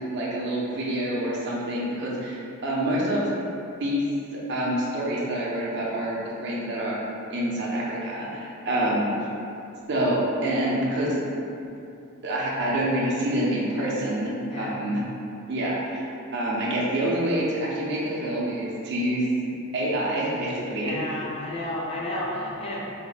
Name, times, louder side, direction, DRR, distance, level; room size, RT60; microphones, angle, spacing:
voice 1, 0.0-3.3 3.8-7.0 7.3-9.1 9.9-11.1 12.2-15.0 15.5-21.0, right 1 dB, 50° right, -5 dB, 0.6 m, -27 dB
voice 2, 20.8-22.8, left 1 dB, 25° left, -5 dB, 0.4 m, -32 dB
3.5 x 2.1 x 3.9 m, 2.6 s
head